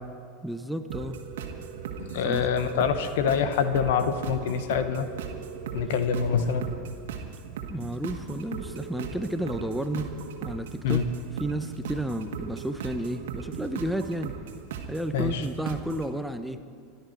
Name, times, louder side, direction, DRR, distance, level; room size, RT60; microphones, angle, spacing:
voice 1, 0.4-1.2 2.2-2.5 7.7-10.1 10.4-11.0 11.4-14.3 14.9-16.6, right 1 dB, ahead, 8 dB, 0.9 m, -32 dB
sound 1, 0.9-16.1, right 7 dB, 70° right, 1.6 m, -38 dB
voice 2, 2.0-5.1 5.7-6.7 10.8-11.0 15.1-15.4, left 7 dB, 65° left, 10 dB, 1.1 m, -25 dB
26.0 x 11.0 x 4.5 m, 2.2 s
hypercardioid pair, 85°, 0 cm